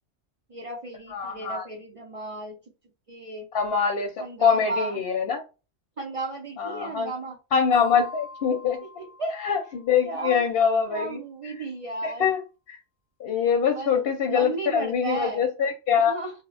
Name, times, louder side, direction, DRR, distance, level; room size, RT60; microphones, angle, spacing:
voice 1, 0.5-2.6 3.1-3.5 4.2-5.0 6.0-7.4 8.8-9.4 10.0-10.4 10.9-12.3 13.7-15.5 16.0-16.3, right 2 dB, 60° right, 0.3 m, -34 dB
voice 2, 1.1-1.7 3.5-5.4 6.6-7.1 7.5-8.8 9.4-11.2 12.0-12.4 13.2-16.1, left 6 dB, 65° left, 0.7 m, -24 dB
sound 1, 7.7-10.2, left 3 dB, 40° left, 0.4 m, -44 dB
2.1 x 2.0 x 3.7 m
omnidirectional pair, 1.2 m